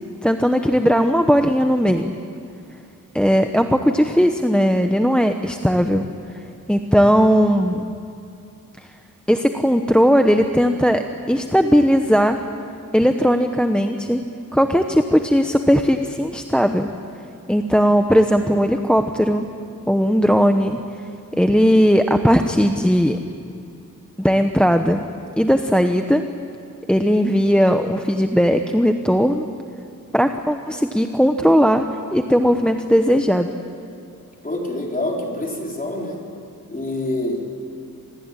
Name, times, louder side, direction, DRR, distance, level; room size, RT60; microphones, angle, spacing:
voice 1, 0.2-2.1 3.1-6.1 6.7-7.8 9.3-12.4 12.9-14.2 14.5-16.9 17.5-19.5 19.9-20.8 21.4-23.2 24.2-25.0 25.4-26.2 26.9-29.5 30.1-31.9 32.1-33.5, equal, 5° left, 6 dB, 0.9 m, -17 dB
voice 2, 34.4-36.2 36.7-37.4, left 1 dB, 25° left, -1 dB, 4.5 m, -26 dB
27.0 x 20.0 x 8.9 m, 2.6 s
wide cardioid pair, 130°, 34 cm